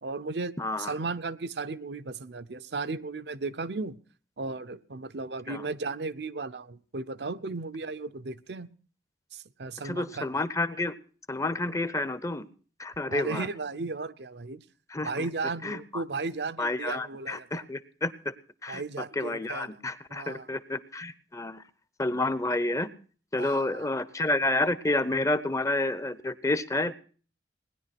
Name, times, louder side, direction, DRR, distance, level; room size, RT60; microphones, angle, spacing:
voice 1, 0.0-3.9 4.4-8.7 9.3-10.3 13.1-14.6 15.0-17.6 18.7-19.8 20.1-20.5 23.4-23.9, right 3 dB, 65° right, 12 dB, 0.7 m, -35 dB
voice 2, 0.6-1.0 5.5-5.6 9.8-11.0 11.3-12.5 12.8-13.5 14.9-15.3 15.6-16.0 16.6-18.3 18.6-21.6 22.0-22.9 23.3-26.9, left 2 dB, 20° left, 15 dB, 0.7 m, -30 dB
19.0 x 10.5 x 5.9 m, 0.42 s
head